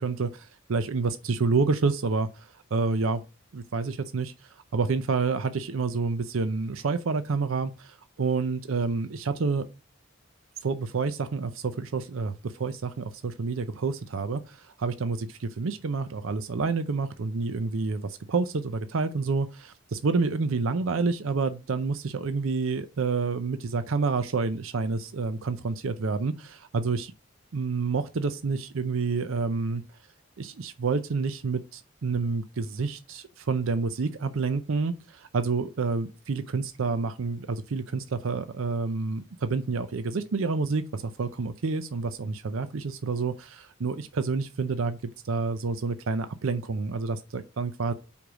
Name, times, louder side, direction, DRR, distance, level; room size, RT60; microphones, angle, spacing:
voice 1, 0.0-3.2 3.5-4.3 4.7-9.7 10.6-27.1 27.5-29.8 30.4-45.0 45.2-47.9, right 4 dB, 75° right, 0.5 m, -28 dB
5.2 x 4.8 x 6.1 m
head